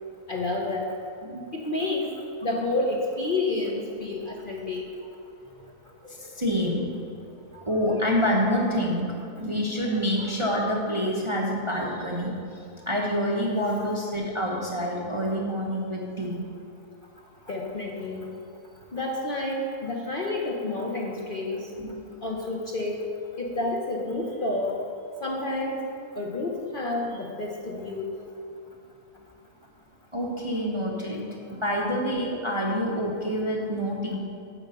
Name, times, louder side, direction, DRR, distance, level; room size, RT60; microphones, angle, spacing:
voice 1, 0.3-0.9 1.5-2.1 2.4-4.9 17.5-18.3 18.9-21.7 22.2-23.0 23.4-24.8 25.2-25.9 26.2-28.2, left 2 dB, 40° left, -2 dB, 0.8 m, -29 dB
voice 2, 6.0-6.9 7.5-9.1 9.4-12.3 12.8-16.4 21.8-21.9 30.1-31.2 31.5-34.2, equal, 25° right, -3 dB, 0.8 m, -27 dB
9.8 x 4.7 x 6.8 m, 2.6 s
omnidirectional pair, 1.6 m